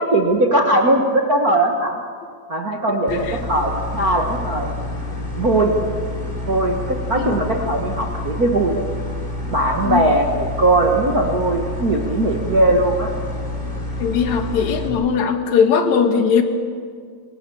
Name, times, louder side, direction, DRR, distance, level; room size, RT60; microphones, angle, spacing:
voice 1, 0.0-2.0 2.5-4.8 5.4-5.8 6.5-8.8 9.5-13.1, right 2 dB, 50° right, 2 dB, 1.1 m, -19 dB
sound 1, 3.1-14.9, left 2 dB, 10° left, 3.7 m, -28 dB
voice 2, 14.0-16.4, left 6 dB, 60° left, 7 dB, 2.7 m, -19 dB
25.0 x 20.5 x 7.1 m, 2.1 s
omnidirectional pair, 4.1 m